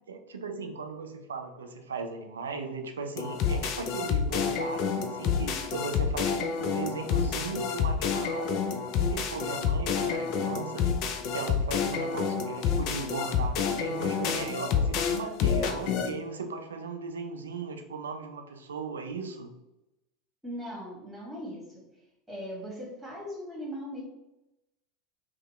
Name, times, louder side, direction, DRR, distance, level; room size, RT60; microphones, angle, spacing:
voice 1, 0.1-8.6 9.0-10.9 11.3-19.5, right 4 dB, 80° right, 5 dB, 0.4 m, -37 dB
sound 1, 3.2-16.1, left 6 dB, 50° left, 0.4 m, -28 dB
voice 2, 20.4-21.8 22.3-24.0, equal, 10° right, -3 dB, 1.4 m, -39 dB
2.8 x 2.0 x 3.1 m, 0.94 s
figure-of-eight pair, 80°, 0 cm